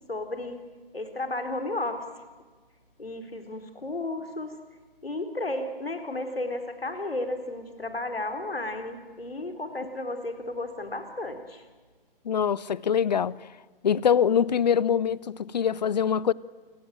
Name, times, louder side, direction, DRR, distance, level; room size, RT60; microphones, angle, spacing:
voice 1, 0.1-0.7 0.9-2.2 3.0-4.6 5.0-11.7, left 2 dB, 75° left, 4.2 m, -33 dB
voice 2, 12.2-13.5 13.8-16.3, left 8 dB, 45° left, 0.8 m, -24 dB
28.5 x 21.5 x 9.1 m
figure-of-eight pair, 135°, 30 cm